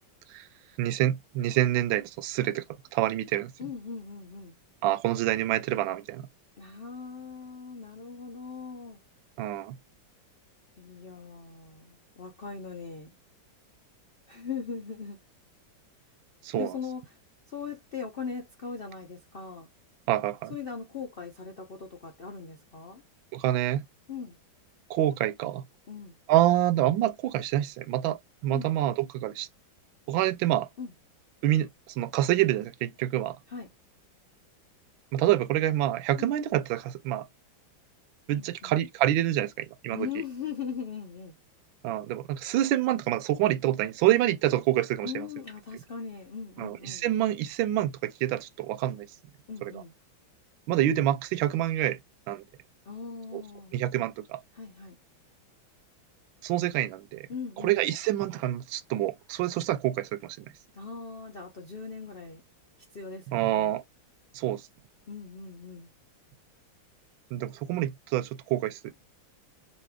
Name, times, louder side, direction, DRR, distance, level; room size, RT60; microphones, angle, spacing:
voice 1, 0.8-2.6 2.9-3.5 4.8-6.3 9.4-9.8 16.4-16.7 20.1-20.6 23.3-23.8 24.9-25.6 26.3-29.5 30.1-30.7 31.4-33.4 35.1-37.3 38.3-40.1 41.8-45.3 46.6-49.1 49.6-49.8 50.7-52.0 52.3-52.4 53.3-53.4 53.7-54.4 56.4-57.3 57.6-60.5 63.3-63.8 64.3-64.6 67.3-68.9, right 13 dB, 85° right, 1.3 m, -27 dB
voice 2, 3.6-4.5 6.6-9.0 10.8-13.1 14.3-15.2 16.5-17.0 17.5-19.7 20.5-23.0 24.1-24.3 25.9-26.1 28.5-28.7 30.8-30.9 33.5-33.7 36.2-36.3 38.3-38.7 39.9-41.3 45.0-47.0 49.5-49.9 52.9-53.8 54.5-55.0 57.3-57.8 60.7-62.4 62.9-63.7 65.1-65.9, left 6 dB, 75° left, 0.5 m, -39 dB
4.2 x 2.6 x 3.4 m
omnidirectional pair, 2.1 m